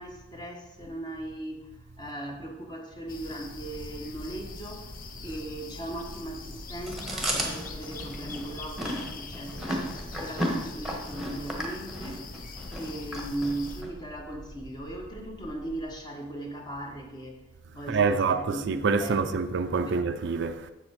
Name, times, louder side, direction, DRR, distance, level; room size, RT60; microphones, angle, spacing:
voice 1, 0.0-1.7 2.0-9.8 10.2-12.2 12.7-17.5 17.7-19.4 19.8-20.0, right 1 dB, 20° left, 1.2 m, -38 dB
sound 1, 3.1-13.8, left 4 dB, 45° left, 0.6 m, -43 dB
sound 2, 3.6-15.8, equal, 90° left, 1.1 m, -47 dB
Chewing mastication, 6.9-13.9, equal, ahead, 1.3 m, -34 dB
voice 2, 17.9-20.7, right 4 dB, 60° right, 0.5 m, -26 dB
7.2 x 7.1 x 4.8 m
head